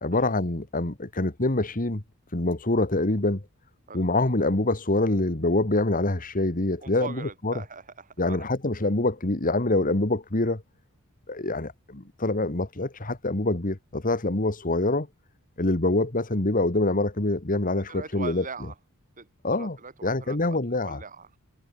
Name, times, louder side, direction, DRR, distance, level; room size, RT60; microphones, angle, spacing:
voice 1, 0.0-2.0 2.3-3.4 3.9-7.1 7.4-7.5 8.2-10.6 11.3-15.1 15.6-18.4 19.4-19.8 20.0-21.0, left 2 dB, 40° left, 1.9 m, -25 dB
voice 2, 6.8-8.5 17.9-18.7 19.2-21.4, right 4 dB, 35° right, 3.1 m, -41 dB
head